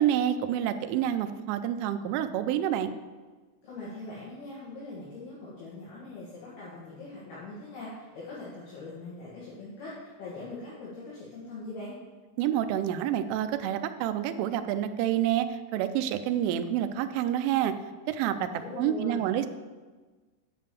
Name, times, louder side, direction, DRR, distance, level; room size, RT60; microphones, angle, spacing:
voice 1, 0.0-2.9 12.4-17.7 18.1-18.5 18.8-19.5, right 11 dB, 80° right, 9 dB, 3.0 m, -28 dB
voice 2, 3.6-11.9 18.4-19.3, left 2 dB, 60° left, -7 dB, 3.2 m, -42 dB
9.6 x 5.5 x 6.8 m, 1.3 s
omnidirectional pair, 5.8 m